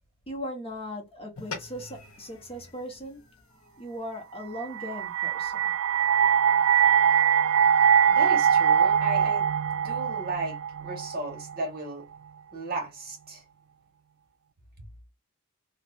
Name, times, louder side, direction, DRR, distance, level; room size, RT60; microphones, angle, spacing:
voice 1, 0.3-3.2 3.8-5.7, equal, 30° left, 1.2 m, -38 dB
sound 1, 1.4-6.0, left 4 dB, 75° left, 0.9 m, -46 dB
sound 2, 4.6-11.7, right 8 dB, 70° right, 0.3 m, -22 dB
voice 2, 8.1-9.5 9.7-12.1 12.5-13.4, right 2 dB, 50° right, 1.6 m, -35 dB
3.1 x 2.5 x 2.5 m
head